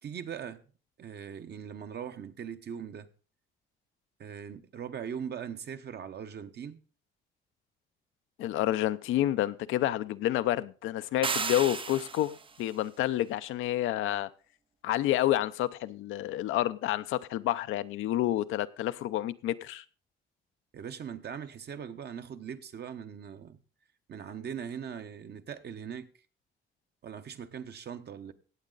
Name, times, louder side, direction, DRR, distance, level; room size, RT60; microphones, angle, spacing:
voice 1, 0.0-0.6 1.0-3.1 4.2-6.8 20.7-23.6 24.1-26.1 27.0-28.3, right 8 dB, 55° right, 1.0 m, -40 dB
voice 2, 8.4-14.3 14.8-19.8, left 13 dB, 90° left, 0.6 m, -29 dB
sound 1, 11.2-12.5, right 5 dB, 25° right, 0.5 m, -33 dB
17.0 x 7.5 x 3.9 m
cardioid pair, 90°, 20 cm